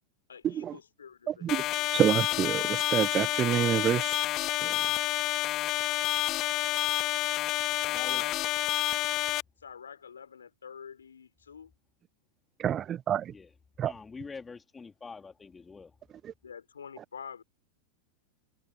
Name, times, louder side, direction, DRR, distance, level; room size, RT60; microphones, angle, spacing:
voice 1, 0.3-2.0 6.4-8.7 9.6-11.7 16.4-17.4, left 7 dB, 70° left, 6.2 m, -48 dB
voice 2, 1.3-1.6 1.9-4.2 4.6-4.8 12.6-13.3 13.8-13.9 16.2-16.3, right 10 dB, 25° right, 1.3 m, -27 dB
sound 1, 1.5-9.4, left 16 dB, 35° left, 0.4 m, -29 dB
voice 3, 13.9-15.9, left 4 dB, 15° left, 2.8 m, -45 dB
figure-of-eight pair, 90°, 0 cm